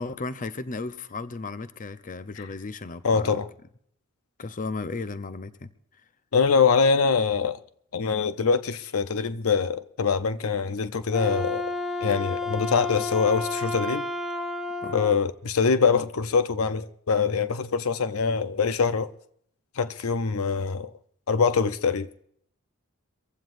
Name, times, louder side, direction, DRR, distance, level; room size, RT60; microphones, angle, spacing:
voice 1, 0.0-3.4 4.4-6.0 14.8-15.0, left 3 dB, 40° left, 0.7 m, -35 dB
voice 2, 3.0-3.5 6.3-7.6 7.9-11.7 12.0-14.1 14.9-19.1 19.8-20.9 21.3-22.1, left 5 dB, 75° left, 0.7 m, -24 dB
Wind instrument woodwind instrument, 11.0-15.2, left 2 dB, ahead, 0.9 m, -31 dB
24.0 x 15.5 x 2.6 m
head